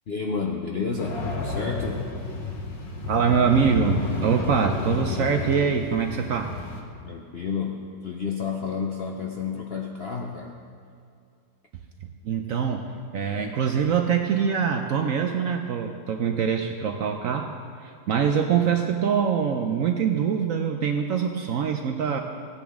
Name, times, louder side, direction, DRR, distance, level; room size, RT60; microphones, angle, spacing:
voice 1, 0.1-2.1 7.0-10.5, left 5 dB, 60° left, 0 dB, 0.6 m, -30 dB
sound 1, 1.0-6.8, left 3 dB, 75° left, 1.8 m, -31 dB
voice 2, 3.1-6.5 12.2-17.5 17.8-22.2, right 7 dB, 70° right, 4 dB, 0.8 m, -24 dB
16.0 x 9.5 x 3.6 m, 2.4 s
omnidirectional pair, 2.0 m